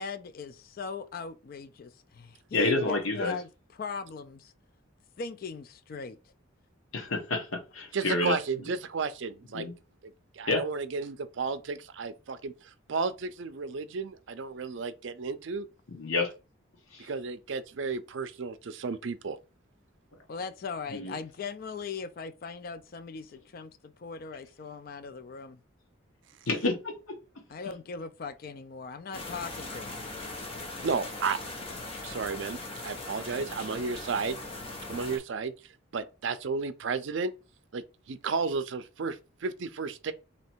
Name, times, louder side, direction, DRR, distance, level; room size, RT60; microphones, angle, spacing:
voice 1, 0.0-4.5 5.2-6.3 20.3-25.6 27.5-30.0, left 5 dB, 45° left, 0.4 m, -39 dB
voice 2, 2.5-3.3 6.9-8.4 9.5-9.7 10.5-10.6 15.9-16.3 16.9-17.1 20.9-21.2 26.5-26.9, left 2 dB, 80° left, 1.0 m, -29 dB
voice 3, 7.9-9.7 10.0-15.7 17.0-19.4 30.8-31.4 32.0-34.4 34.9-35.5 35.9-37.3 37.7-40.1, right 4 dB, 60° right, 0.4 m, -33 dB
sound 1, 29.1-35.2, left 2 dB, 30° left, 0.8 m, -40 dB
3.2 x 2.9 x 4.4 m
head